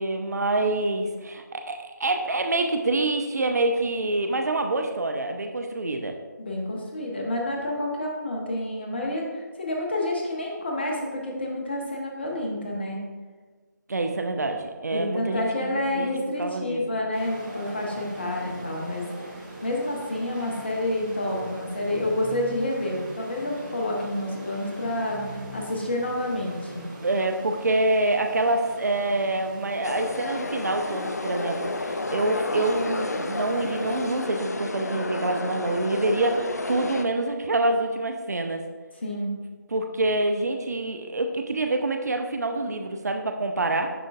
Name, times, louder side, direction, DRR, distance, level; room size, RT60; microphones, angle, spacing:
voice 1, 0.0-6.1 13.9-16.1 16.4-16.8 27.0-38.6 39.7-43.9, right 2 dB, 55° right, 5 dB, 0.5 m, -26 dB
voice 2, 6.4-13.0 14.9-19.1 19.6-25.2 25.5-26.8 39.0-39.3, left 1 dB, 30° left, -1 dB, 1.0 m, -29 dB
sound 1, 17.1-34.2, right 1 dB, 30° right, 1.5 m, -41 dB
sound 2, 29.8-37.0, left 3 dB, 55° left, 0.4 m, -31 dB
10.5 x 3.8 x 2.4 m, 1.4 s
figure-of-eight pair, 155°, 11 cm